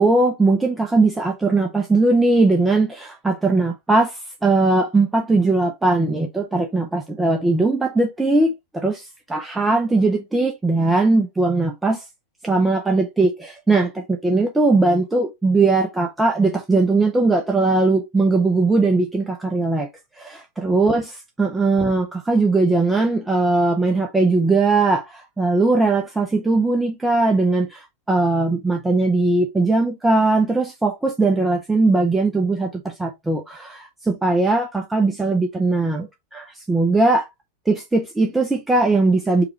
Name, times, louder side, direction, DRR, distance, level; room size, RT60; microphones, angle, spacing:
voice 1, 0.0-12.0 12.4-19.9 20.2-37.3 37.7-39.4, right 3 dB, 10° right, 0.5 m, -19 dB
4.8 x 2.3 x 3.0 m
figure-of-eight pair, 90°, 0 cm